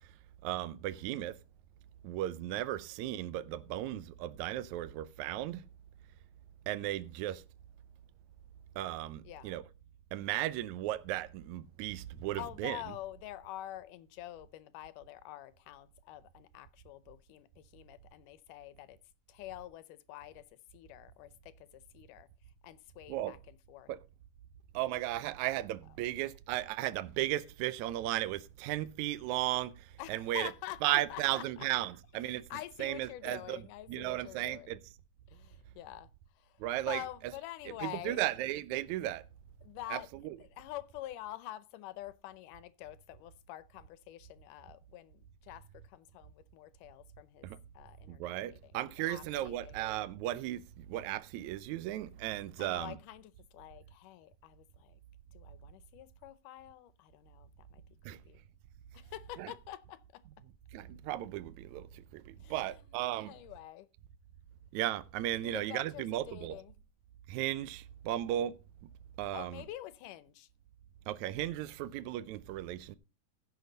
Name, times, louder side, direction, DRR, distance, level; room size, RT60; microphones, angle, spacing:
voice 1, 0.4-1.4 2.0-5.6 6.7-7.4 8.8-9.6 10.1-12.8 23.1-23.3 23.9-24.0 24.7-30.5 30.8-32.4 32.8-33.6 33.9-34.8 36.6-37.0 38.1-39.2 39.9-40.4 47.4-47.6 48.1-53.0 58.1-58.2 59.4-59.5 60.7-63.3 64.7-66.6 67.3-68.5 69.2-69.6 71.1-73.0, right 14 dB, 80° right, 1.8 m, -35 dB
voice 2, 9.2-9.6 12.3-19.0 19.3-20.4 20.7-22.3 22.6-23.9 30.0-31.9 32.2-34.7 35.3-36.1 36.4-36.5 36.9-38.2 39.6-40.1 40.4-47.5 47.7-48.7 49.1-49.7 52.6-55.0 55.3-57.8 58.1-58.4 58.9-60.2 62.4-62.8 63.3-63.9 65.4-66.8 69.3-70.5, left 14 dB, 80° left, 2.2 m, -47 dB
15.5 x 6.5 x 3.9 m
omnidirectional pair, 3.8 m